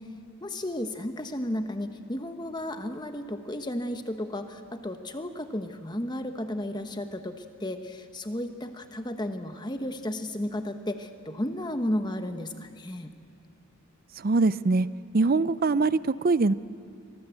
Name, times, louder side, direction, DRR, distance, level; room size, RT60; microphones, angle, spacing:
voice 1, 0.4-13.1, left 1 dB, 20° left, 7 dB, 1.1 m, -33 dB
voice 2, 14.2-14.9 15.1-16.5, right 3 dB, 40° right, 16 dB, 0.5 m, -23 dB
25.5 x 19.5 x 8.0 m, 2.6 s
head